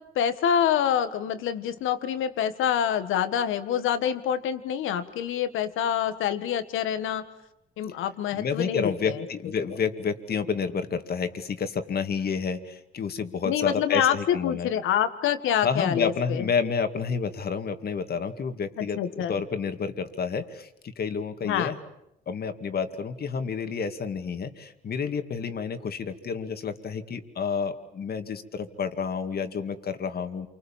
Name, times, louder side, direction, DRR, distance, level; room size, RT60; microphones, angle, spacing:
voice 1, 0.1-7.2 7.8-9.2 13.4-16.5 18.8-19.4 21.4-21.7, left 9 dB, 85° left, 11 dB, 1.7 m, -26 dB
voice 2, 8.3-14.7 15.6-21.8 22.3-30.5, left 5 dB, 50° left, 8 dB, 2.2 m, -30 dB
28.0 x 25.0 x 7.4 m, 0.84 s
cardioid pair, 90°, 20 cm